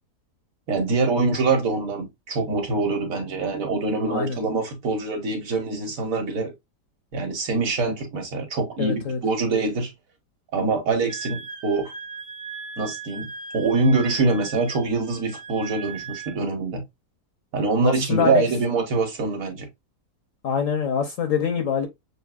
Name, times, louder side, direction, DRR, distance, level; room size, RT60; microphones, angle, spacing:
voice 1, 0.7-6.5 7.1-9.9 10.5-11.9 12.8-16.8 17.5-19.7, right 3 dB, 55° right, 1.5 m, -24 dB
voice 2, 4.0-4.4 8.8-9.2 17.8-18.4 20.4-21.9, left 7 dB, 60° left, 1.0 m, -24 dB
Wind instrument woodwind instrument, 11.1-16.4, right 5 dB, 5° left, 0.5 m, -38 dB
6.6 x 2.6 x 2.4 m
omnidirectional pair, 1.8 m